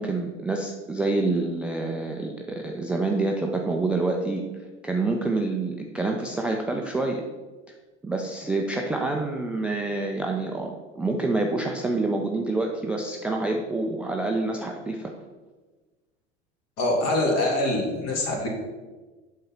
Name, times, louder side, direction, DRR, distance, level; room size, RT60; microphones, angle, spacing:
voice 1, 0.0-4.4 4.8-7.2 8.0-15.1, right 2 dB, 5° right, 1 dB, 0.3 m, -27 dB
voice 2, 16.8-18.5, left 1 dB, 45° left, 1 dB, 2.1 m, -24 dB
7.6 x 3.8 x 5.8 m, 1.3 s
figure-of-eight pair, 80°, 36 cm